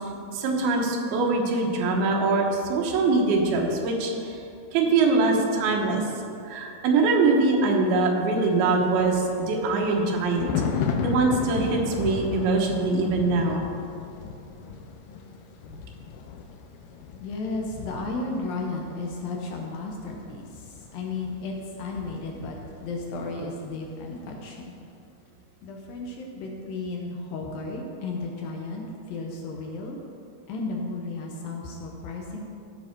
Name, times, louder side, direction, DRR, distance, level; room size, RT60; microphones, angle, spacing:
voice 1, 0.3-4.4 4.7-6.0 6.4-10.5 11.0-13.6, right 3 dB, 75° right, 0 dB, 3.0 m, -23 dB
Thunder, 8.6-23.2 23.5-23.8, left 6 dB, 90° left, 2.7 m, -35 dB
voice 2, 17.2-24.8 25.6-30.0 30.5-32.4, left 3 dB, 75° left, 0 dB, 2.4 m, -34 dB
14.5 x 5.4 x 4.4 m, 2.6 s
omnidirectional pair, 4.5 m